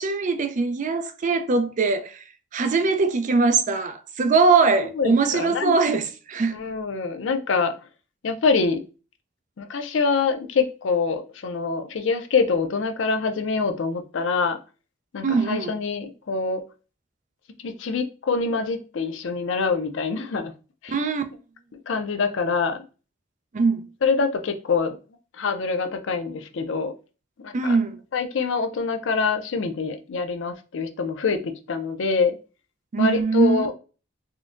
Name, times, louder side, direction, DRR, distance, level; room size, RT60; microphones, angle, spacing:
voice 1, 0.0-2.2 2.5-6.6 15.2-15.7 20.9-21.2 23.5-23.8 27.5-28.0 32.9-33.7, right 4 dB, 40° right, 0.4 m, -21 dB
voice 2, 5.0-5.7 6.5-7.7 8.2-8.8 9.6-14.6 15.1-16.6 17.6-20.5 20.8-21.0 21.9-22.8 24.0-25.0 25.4-26.9 27.4-27.8 28.1-32.3 33.0-33.7, left 4 dB, 75° left, 0.5 m, -25 dB
3.7 x 2.1 x 2.4 m
head